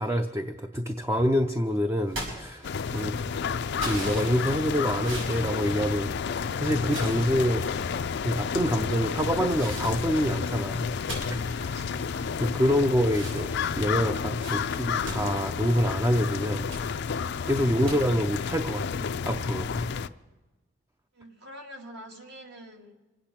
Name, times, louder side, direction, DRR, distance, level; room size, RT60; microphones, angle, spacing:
voice 1, 0.0-3.1 3.8-6.1 6.5-7.7 8.2-10.9 11.3-11.8 12.4-16.7 17.5-19.8, equal, 15° right, 7 dB, 0.5 m, -26 dB
sound 1, 2.1-3.1 3.8-6.4 6.8-7.9 8.5-9.0 9.6-12.7 13.1-16.1 16.5-16.9 17.9-18.0, right 1 dB, 90° right, 5.3 m, -40 dB
sound 2, 2.6-20.1, left 6 dB, 60° left, 0.4 m, -31 dB
voice 2, 2.9-3.3 11.6-12.1 21.1-22.9, equal, 60° right, 3 dB, 2.0 m, -46 dB
25.5 x 8.7 x 5.9 m, 1.2 s
head